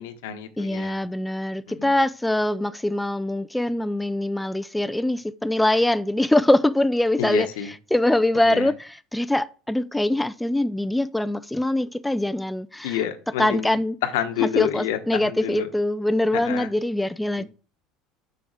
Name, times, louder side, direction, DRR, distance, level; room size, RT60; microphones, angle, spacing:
voice 1, 0.0-1.0 1.7-1.9 7.2-7.7 8.5-8.7 12.8-15.7 16.3-16.7 17.4-17.5, left 10 dB, 85° left, 1.2 m, -28 dB
voice 2, 0.6-7.5 7.9-13.0 13.4-14.0 14.4-17.4, left 1 dB, 5° left, 0.4 m, -23 dB
7.0 x 7.0 x 5.0 m
supercardioid pair, 110°, 0 cm